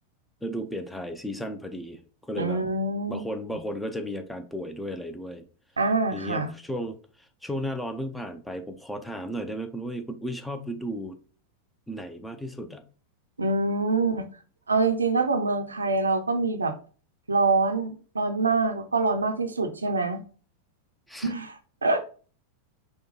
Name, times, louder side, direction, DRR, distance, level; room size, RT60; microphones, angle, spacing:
voice 1, 0.4-2.6 3.1-5.5 6.1-11.2 11.9-12.9 21.1-21.3, equal, 5° left, 7 dB, 0.6 m, -34 dB
voice 2, 2.4-3.2 5.8-6.5 13.4-14.3 14.7-16.7 17.3-20.2 21.2-22.0, right 3 dB, 75° right, 6 dB, 0.6 m, -25 dB
5.1 x 2.3 x 3.9 m, 0.40 s
figure-of-eight pair, 90°, 0 cm